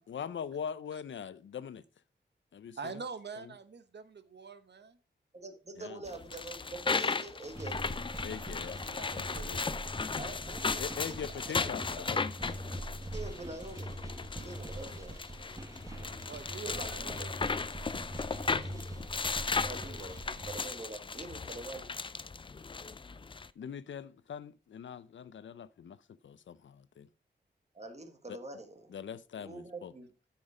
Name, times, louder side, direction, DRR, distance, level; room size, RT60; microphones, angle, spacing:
voice 1, 0.1-1.8 2.5-2.9 5.8-6.0 8.2-9.8 10.8-12.3 12.9-13.1 23.6-26.0 26.2-27.1 28.3-28.4 28.9-29.9, left 7 dB, 90° left, 0.6 m, -42 dB
voice 2, 2.8-5.0 8.9-9.7 16.3-17.3, right 5 dB, 65° right, 1.0 m, -45 dB
voice 3, 5.3-7.9 10.2-12.0 13.1-13.9 14.3-15.2 16.0-16.2 16.6-17.3 18.4-18.7 19.5-21.9 27.7-28.9 29.4-30.1, right 2 dB, 35° right, 1.6 m, -45 dB
sound 1, 6.1-23.5, left 4 dB, 25° left, 0.4 m, -36 dB
sound 2, 7.5-20.7, right 1 dB, 15° right, 1.2 m, -43 dB
8.8 x 6.1 x 4.9 m
wide cardioid pair, 115°, 19 cm